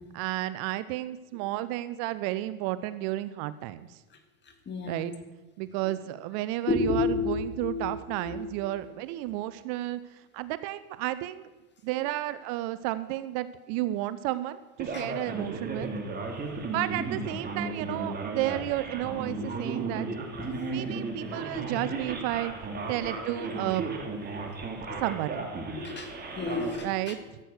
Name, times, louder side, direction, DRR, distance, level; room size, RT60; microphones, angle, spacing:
voice 1, 0.1-4.0 4.9-5.1 5.6-11.5 11.8-15.9 16.6-20.1 20.7-22.5 22.9-23.9 25.0-25.5 26.8-27.4, right 15 dB, 50° right, 15 dB, 0.6 m, -32 dB
voice 2, 4.7-5.1 6.7-8.5 14.9-15.1 19.4-19.7 20.5-21.0 21.4-21.6 23.4-23.5 24.9-25.0 25.7-27.2, left 4 dB, 25° left, 7 dB, 2.0 m, -32 dB
Male speech man speaking, 14.8-26.8, right 3 dB, 20° right, 2.5 m, -35 dB
14.0 x 8.1 x 6.4 m, 1.2 s
hypercardioid pair, 105°, 44 cm